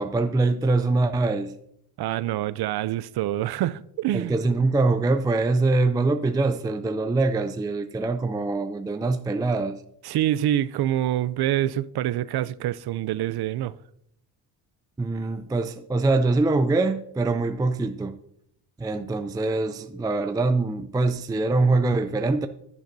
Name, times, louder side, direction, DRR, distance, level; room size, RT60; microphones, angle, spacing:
voice 1, 0.0-1.5 4.1-9.8 15.0-18.2 18.8-22.5, right 3 dB, 10° right, 0.4 m, -23 dB
voice 2, 2.0-4.4 10.0-13.7, right 13 dB, 60° right, 0.5 m, -26 dB
11.0 x 10.5 x 2.7 m
cardioid pair, 85°, 43 cm